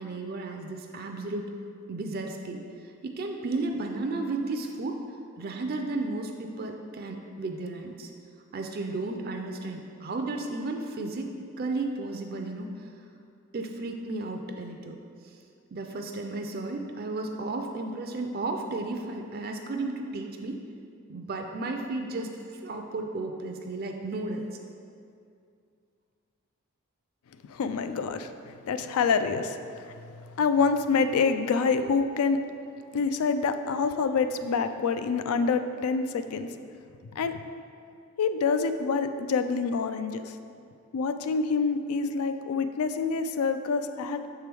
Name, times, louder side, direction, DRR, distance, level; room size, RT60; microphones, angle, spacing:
voice 1, 0.0-1.5 1.9-5.0 5.4-8.1 8.5-11.3 11.6-12.9 13.5-15.0 15.7-20.6 21.1-22.4 22.6-24.4, right 2 dB, 45° right, 3 dB, 0.4 m, -33 dB
voice 2, 27.5-32.4 32.9-36.5 37.1-37.4 38.2-40.3 40.9-44.3, left 5 dB, 85° left, 10 dB, 0.3 m, -27 dB
6.7 x 4.6 x 3.4 m, 2.4 s
head